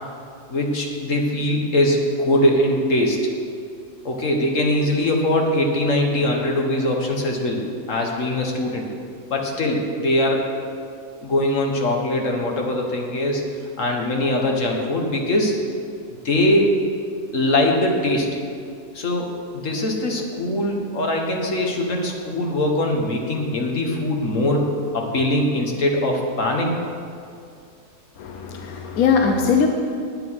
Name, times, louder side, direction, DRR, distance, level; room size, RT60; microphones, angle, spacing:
voice 1, 0.5-3.3 4.0-8.9 9.3-10.5 11.2-13.5 13.8-15.6 16.2-16.7 17.3-18.3 18.9-26.7, left 1 dB, 60° left, 1 dB, 1.6 m, -22 dB
voice 2, 28.2-29.7, left 6 dB, 75° left, 3 dB, 1.2 m, -20 dB
9.4 x 9.0 x 5.8 m, 2.4 s
omnidirectional pair, 1.5 m